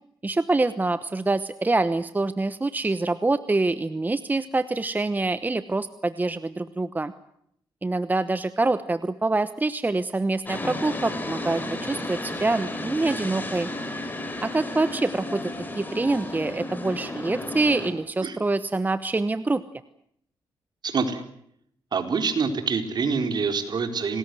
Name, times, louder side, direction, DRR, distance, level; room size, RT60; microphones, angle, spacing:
voice 1, 0.2-7.1 7.8-13.7 14.4-19.6, right 2 dB, 20° right, 13 dB, 1.0 m, -25 dB
sound 1, 10.4-17.9, left 1 dB, 20° left, 5.9 m, -33 dB
voice 2, 20.8-21.2 21.9-24.2, right 5 dB, 55° right, 7 dB, 4.2 m, -26 dB
26.5 x 20.0 x 7.8 m, 0.71 s
cardioid pair, 95°, 9 cm